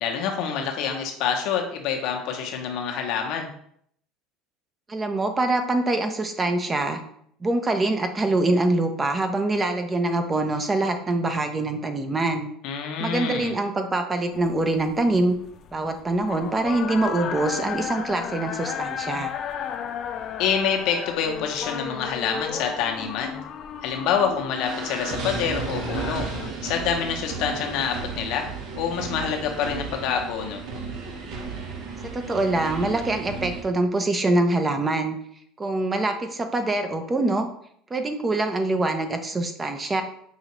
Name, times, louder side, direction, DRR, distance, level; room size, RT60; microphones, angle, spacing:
voice 1, 0.0-3.5 12.6-13.6 20.4-23.4 23.8-26.2 26.6-30.6, left 7 dB, 65° left, 2 dB, 0.7 m, -27 dB
voice 2, 4.9-7.0 7.4-12.5 13.0-15.4 15.7-19.3 32.0-35.2 35.6-37.5 37.9-40.0, right 2 dB, 20° right, 6 dB, 0.6 m, -24 dB
sound 1, 14.3-26.5, left 8 dB, 50° left, 0.3 m, -34 dB
sound 2, 24.6-33.6, right 4 dB, 60° right, 0.9 m, -34 dB
5.5 x 2.4 x 3.0 m, 0.66 s
supercardioid pair, 90°, 0 cm